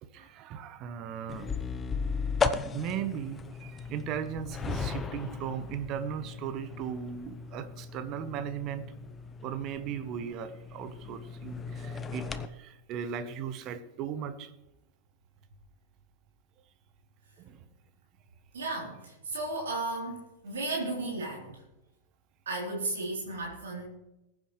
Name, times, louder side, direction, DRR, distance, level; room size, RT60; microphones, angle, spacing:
voice 1, 0.0-1.5 2.7-8.9 9.4-14.5 17.4-17.7, right 8 dB, 40° right, 12 dB, 1.1 m, -37 dB
sound 1, 1.3-12.5, left 5 dB, 20° left, 0.8 m, -36 dB
voice 2, 18.5-21.6 22.5-23.8, right 2 dB, 65° right, -3 dB, 3.6 m, -34 dB
20.5 x 9.0 x 3.2 m, 0.95 s
figure-of-eight pair, 90°, 0 cm